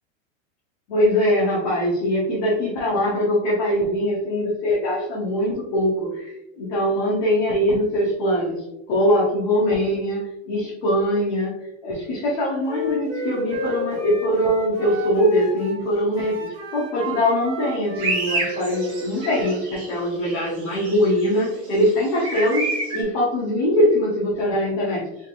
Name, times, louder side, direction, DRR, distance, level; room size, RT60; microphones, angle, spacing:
voice 1, 0.9-16.5 16.7-25.1, equal, 35° left, -7 dB, 1.1 m, -22 dB
Wind instrument woodwind instrument, 12.6-15.8 16.1-19.6, right 1 dB, 35° right, 0.9 m, -32 dB
sound 1, 18.0-20.0 20.2-23.0, right 2 dB, 15° right, 1.1 m, -29 dB
4.4 x 3.6 x 2.5 m, 0.91 s
supercardioid pair, 165°, 40 cm